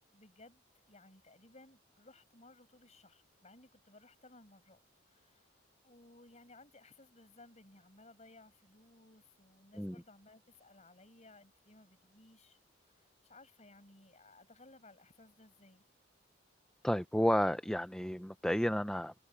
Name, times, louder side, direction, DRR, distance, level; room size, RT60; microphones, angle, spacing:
voice 1, 0.0-4.8 5.1-12.6 12.8-15.9, left 2 dB, 35° left, 6.2 m, -60 dB
voice 2, 16.8-19.1, equal, 5° left, 0.5 m, -31 dB
head